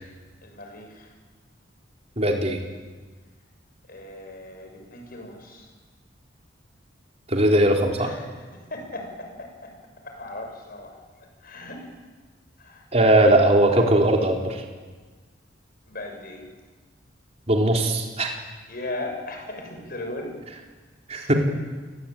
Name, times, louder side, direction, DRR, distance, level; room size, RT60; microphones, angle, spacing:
voice 1, 0.4-1.1 3.9-5.7 8.0-8.3 8.5-9.7 10.0-11.0 11.4-11.9 12.6-12.9 15.9-16.5 18.7-20.3 21.1-21.3, left 2 dB, 50° left, 4 dB, 6.6 m, -37 dB
voice 2, 2.2-2.6 7.3-8.1 12.9-14.6 17.5-18.4 21.1-21.3, right 1 dB, 35° right, 1 dB, 4.0 m, -19 dB
30.0 x 20.5 x 9.2 m, 1.4 s
head